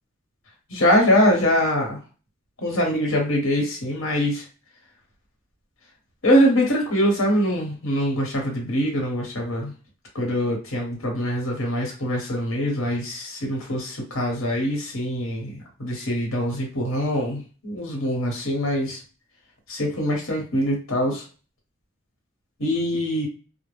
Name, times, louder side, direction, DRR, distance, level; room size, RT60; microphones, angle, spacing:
voice 1, 0.7-2.0 2.6-4.4 6.2-9.7 10.1-19.0 19.7-21.2 22.6-23.3, equal, 80° left, 0 dB, 1.0 m, -23 dB
2.3 x 2.0 x 3.2 m, 0.36 s
head